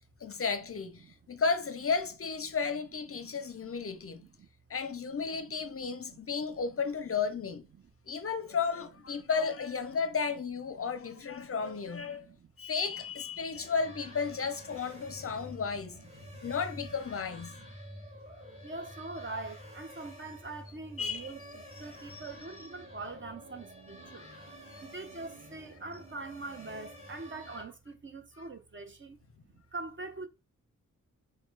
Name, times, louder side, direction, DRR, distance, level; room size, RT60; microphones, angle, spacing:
voice 1, 0.2-4.2 4.7-7.7 8.1-12.3 12.6-16.0 16.4-17.6 21.0-21.3 22.1-22.2 24.7-24.8, left 5 dB, 45° left, 0.5 m, -33 dB
voice 2, 3.2-4.5 5.7-6.3 7.4-7.8 10.8-12.5 13.5-13.7 15.0-15.5 16.2-16.4 17.6-17.7 18.6-24.3 24.8-29.2 29.5-30.3, right 3 dB, 35° right, 0.7 m, -44 dB
sound 1, 13.5-27.6, equal, 20° right, 1.8 m, -49 dB
5.2 x 2.2 x 4.6 m
wide cardioid pair, 160°, 32 cm